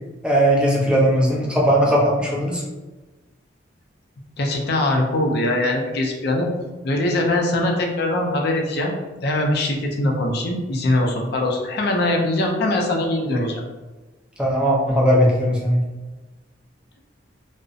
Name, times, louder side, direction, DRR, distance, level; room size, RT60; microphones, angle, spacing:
voice 1, 0.2-2.6 14.4-15.8, equal, 5° right, -4 dB, 0.4 m, -18 dB
voice 2, 4.4-6.5 6.8-8.9 9.2-13.6, left 1 dB, 60° left, 1 dB, 0.4 m, -22 dB
2.6 x 2.0 x 2.4 m, 1.2 s
head